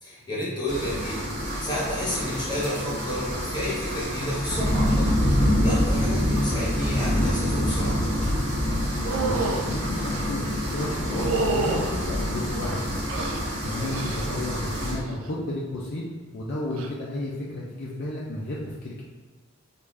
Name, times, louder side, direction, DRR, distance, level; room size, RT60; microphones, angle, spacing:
voice 1, 0.0-8.0 13.7-14.0, left 1 dB, 20° left, -6 dB, 1.0 m, -31 dB
sound 1, 0.7-14.9, equal, 90° right, 1.1 m, -26 dB
sound 2, 9.0-9.7 11.1-11.9 12.6-13.4 13.9-14.4 14.7-15.2 16.7-16.9, right 3 dB, 65° right, 0.4 m, -28 dB
voice 2, 9.2-13.1 13.6-16.0 16.3-19.0, left 1 dB, 50° left, -5 dB, 0.4 m, -32 dB
3.4 x 2.5 x 3.2 m, 1.3 s
head